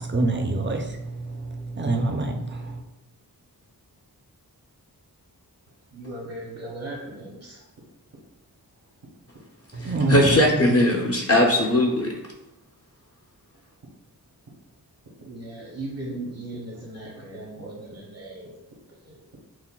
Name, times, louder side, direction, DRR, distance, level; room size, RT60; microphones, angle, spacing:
voice 1, 0.0-2.8 9.7-10.6, right 2 dB, 30° right, 0.4 m, -26 dB
voice 2, 5.9-7.6 15.2-18.5 19.1-19.2, right 2 dB, 65° right, 0.9 m, -37 dB
voice 3, 9.8-12.2, left 1 dB, 40° left, 0.5 m, -20 dB
5.8 x 2.1 x 2.2 m
wide cardioid pair, 80°, 38 cm